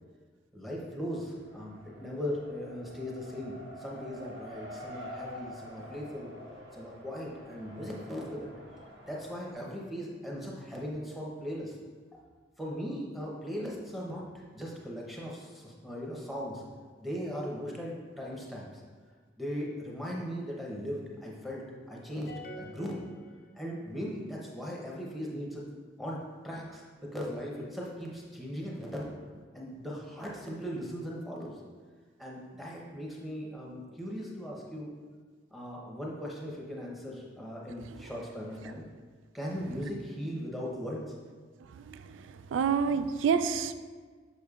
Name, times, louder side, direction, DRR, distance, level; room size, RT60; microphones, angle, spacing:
voice 1, 0.5-6.4 6.7-8.5 9.0-11.8 12.6-16.6 17.0-18.8 19.4-23.0 23.5-25.7 26.0-29.1 29.5-31.6 32.2-35.0 35.5-38.8 39.3-41.0, equal, ahead, -3 dB, 0.7 m, -38 dB
Race car auto racing, 1.4-9.5, equal, 60° right, 1.0 m, -47 dB
sound 1, 22.3-24.0, left 2 dB, 50° left, 0.4 m, -48 dB
voice 2, 41.7-43.7, right 6 dB, 85° right, 11 dB, 0.3 m, -29 dB
6.5 x 6.1 x 2.4 m, 1.5 s
head